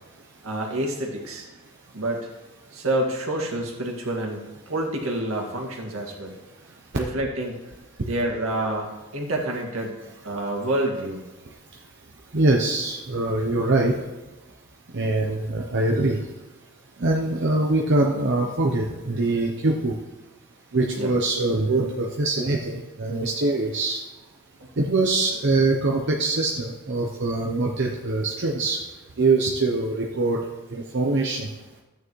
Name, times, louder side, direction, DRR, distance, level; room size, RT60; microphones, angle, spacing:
voice 1, 0.4-1.5 1.9-2.3 2.7-6.3 6.9-7.6 8.1-10.0 10.2-11.2 21.0-21.1, right 1 dB, 70° right, 0 dB, 2.0 m, -28 dB
voice 2, 12.3-13.9 14.9-16.2 17.0-19.9 20.7-24.0 24.8-28.8 29.2-30.4 30.7-31.5, right 2 dB, 55° right, 1 dB, 0.8 m, -23 dB
13.5 x 9.0 x 3.2 m, 1.1 s
head